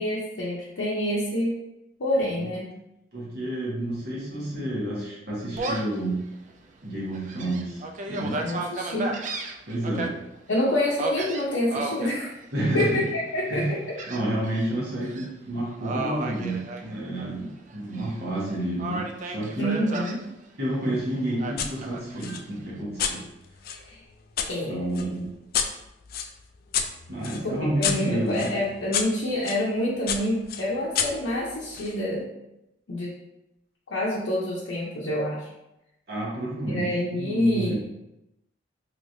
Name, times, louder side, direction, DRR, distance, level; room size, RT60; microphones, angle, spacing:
voice 1, 0.0-1.6 2.0-2.7 8.2-9.2 10.5-12.3 12.7-13.0 13.3-13.8 19.6-20.2 23.7-24.0 24.5-24.8 27.4-32.3 32.9-33.1 33.9-35.5 36.7-37.7, left 1 dB, 85° left, -7 dB, 0.6 m, -27 dB
voice 2, 3.1-6.3 6.8-8.4 9.7-10.2 12.5-13.0 13.5-13.7 14.1-19.7 20.6-23.2 24.7-25.3 27.1-28.5 36.1-37.7, right 1 dB, 60° right, -5 dB, 1.2 m, -30 dB
Gull seagull, 5.6-6.0 6.5-6.6 7.1-10.1 11.0-12.1 12.7-13.1 14.0-14.7 15.0-15.3 15.8-17.4 17.7-18.4 18.8-20.2 21.4-22.4, right 3 dB, 40° right, 0.3 m, -33 dB
sound 1, 21.6-21.7 22.2-24.5 24.9-29.6 30.1-31.9, left 7 dB, 50° left, 0.3 m, -31 dB
3.1 x 3.1 x 2.6 m, 0.89 s
head